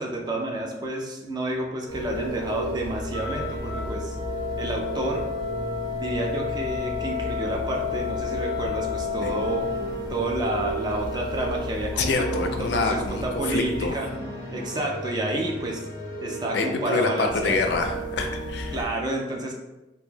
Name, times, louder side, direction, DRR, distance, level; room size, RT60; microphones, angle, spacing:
voice 1, 0.0-4.2 4.6-5.2 5.9-9.7 10.1-14.1 14.5-15.9 16.2-17.6 18.7-19.5, right 2 dB, 25° right, 0 dB, 0.3 m, -30 dB
sound 1, 1.9-18.8, equal, 25° left, 0.6 m, -33 dB
Wind instrument woodwind instrument, 3.1-9.9, left 10 dB, 85° right, 0.8 m, -32 dB
voice 2, 12.0-14.0 16.5-18.8, left 3 dB, 65° left, 5 dB, 0.3 m, -26 dB
2.2 x 2.1 x 3.1 m, 1.0 s
head